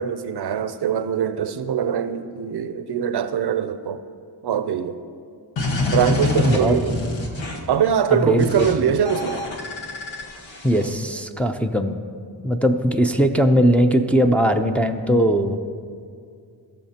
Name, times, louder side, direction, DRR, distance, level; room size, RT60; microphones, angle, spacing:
voice 1, 0.0-4.0 4.4-5.0 5.9-7.0 7.7-9.4, right 8 dB, 60° right, 11 dB, 0.6 m, -22 dB
sound 1, 5.6-7.7 8.4-8.7 9.1-10.9, left 3 dB, 80° left, 1.3 m, -26 dB
voice 2, 6.2-7.1 8.1-8.7 10.6-12.0 12.4-15.6, equal, 5° left, 4 dB, 0.5 m, -20 dB
17.5 x 6.6 x 2.9 m, 2.3 s
cardioid pair, 65°, 45 cm